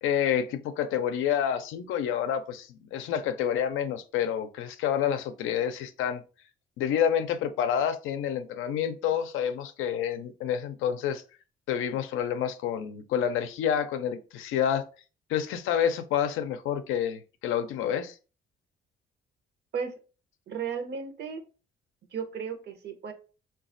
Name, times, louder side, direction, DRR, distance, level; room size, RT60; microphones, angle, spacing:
voice 1, 0.0-6.2 6.8-11.2 11.7-14.8 15.3-18.2, left 9 dB, 90° left, 10 dB, 0.4 m, -28 dB
voice 2, 20.5-21.4 22.1-23.1, right 6 dB, 60° right, 6 dB, 0.7 m, -34 dB
4.0 x 2.3 x 2.5 m, 0.34 s
cardioid pair, 90°, 20 cm